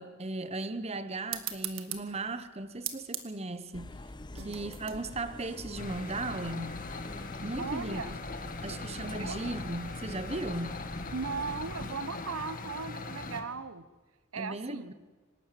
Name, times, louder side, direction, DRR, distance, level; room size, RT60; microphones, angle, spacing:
voice 1, 0.0-3.9 4.3-6.8 7.4-8.0 8.6-10.9 14.3-14.9, right 2 dB, 30° right, 12 dB, 1.0 m, -37 dB
sound 1, 1.3-6.4, right 11 dB, 75° right, 1.7 m, -42 dB
sound 2, 3.7-12.0, left 1 dB, 20° left, 0.7 m, -45 dB
sound 3, 5.8-13.4, left 3 dB, 40° left, 1.9 m, -41 dB
voice 2, 7.6-8.2 9.2-9.4 11.1-13.9 14.3-14.9, right 4 dB, 90° right, 14 dB, 1.0 m, -37 dB
25.0 x 12.5 x 9.3 m, 1.3 s
head